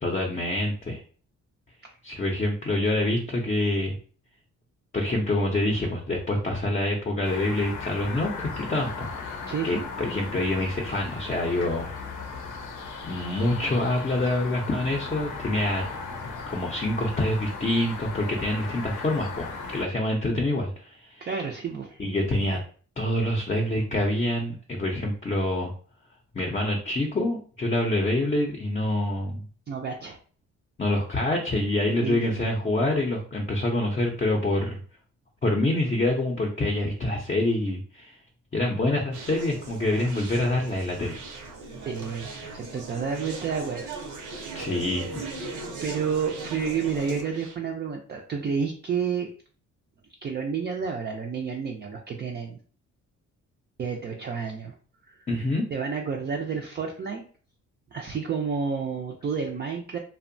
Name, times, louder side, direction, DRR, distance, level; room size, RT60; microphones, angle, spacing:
voice 1, 0.0-1.0 2.0-4.0 4.9-9.3 9.6-11.9 13.1-15.8 16.5-19.5 19.7-21.3 22.0-22.6 23.0-25.7 26.3-29.4 30.8-34.8 35.4-38.2 38.5-41.2 44.5-45.5 55.3-55.7, left 1 dB, 25° left, 1 dB, 0.5 m, -26 dB
sound 1, 7.2-19.9, left 4 dB, 80° left, 0.7 m, -37 dB
voice 2, 9.5-9.9 21.2-22.0 29.7-30.2 32.0-32.4 41.9-43.9 44.3-44.7 45.8-49.3 50.2-52.6 53.8-54.7 55.1-55.2 55.7-57.2 57.9-60.0, right 6 dB, 35° right, 2 dB, 0.4 m, -30 dB
Conversation, 39.1-47.6, right 3 dB, 85° right, 0.7 m, -38 dB
2.7 x 2.1 x 2.5 m, 0.42 s
cardioid pair, 90°, 30 cm